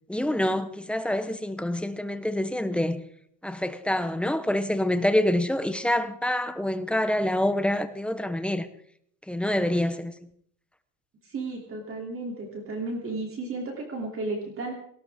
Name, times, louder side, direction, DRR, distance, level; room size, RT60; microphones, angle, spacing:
voice 1, 0.1-3.0 3.4-8.7 9.3-10.1, left 1 dB, ahead, 0.7 m, -26 dB
voice 2, 11.3-14.7, right 2 dB, 25° right, 2.8 m, -33 dB
18.0 x 18.0 x 3.5 m
cardioid pair, 155°, 49 cm